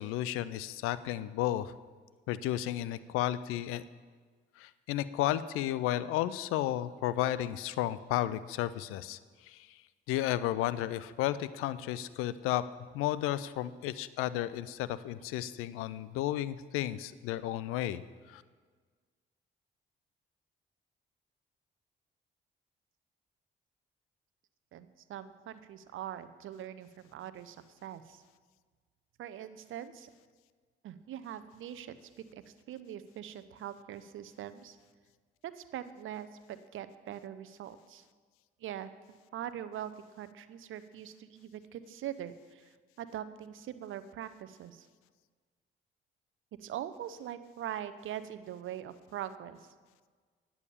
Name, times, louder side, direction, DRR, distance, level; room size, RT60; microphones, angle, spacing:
voice 1, 0.0-1.7 2.3-3.8 4.6-9.2 9.5-9.7 10.1-12.7 12.9-18.0 18.3-18.4, left 13 dB, 85° left, 16 dB, 0.4 m, -33 dB
voice 2, 24.7-27.6 27.8-28.2 29.2-30.1 30.8-34.8 35.4-38.0 38.6-38.9 39.3-44.9 46.6-49.6, right 10 dB, 70° right, 13 dB, 0.7 m, -42 dB
9.9 x 7.0 x 7.0 m, 1.5 s
supercardioid pair, 55°, 21 cm